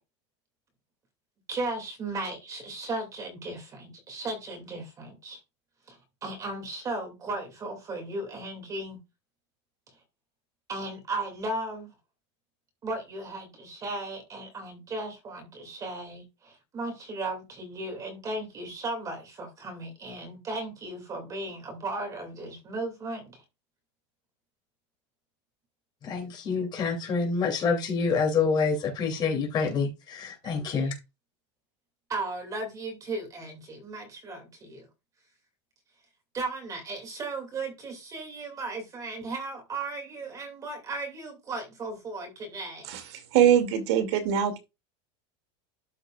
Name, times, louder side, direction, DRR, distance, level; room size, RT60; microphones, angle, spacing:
voice 1, 1.5-5.4 5.9-9.0 10.7-11.9 12.8-23.4 30.8-30.9 32.1-34.9 36.3-42.9, right 2 dB, 20° right, 2.5 m, -36 dB
voice 2, 26.0-30.9, left 5 dB, 30° left, 2.9 m, -27 dB
voice 3, 43.3-44.6, right 9 dB, 65° right, 2.5 m, -22 dB
12.5 x 6.4 x 2.4 m
supercardioid pair, 155°, 15 cm